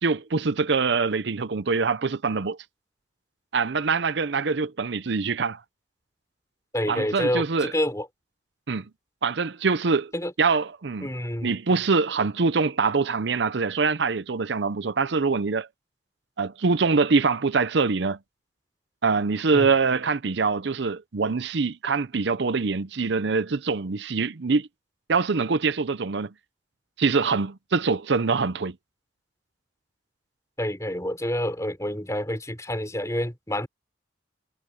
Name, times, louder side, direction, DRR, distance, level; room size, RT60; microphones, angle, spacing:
voice 1, 0.0-2.6 3.5-5.6 6.9-7.7 8.7-8.8 9.2-10.1 10.4-11.1 11.4-15.7 16.4-18.2 19.0-24.7 25.1-26.3 27.0-28.8, right 4 dB, 65° right, 0.6 m, -24 dB
voice 2, 6.7-8.1 10.1-10.3 11.0-11.5 19.5-19.7 30.6-33.7, left 1 dB, 15° left, 4.2 m, -28 dB
head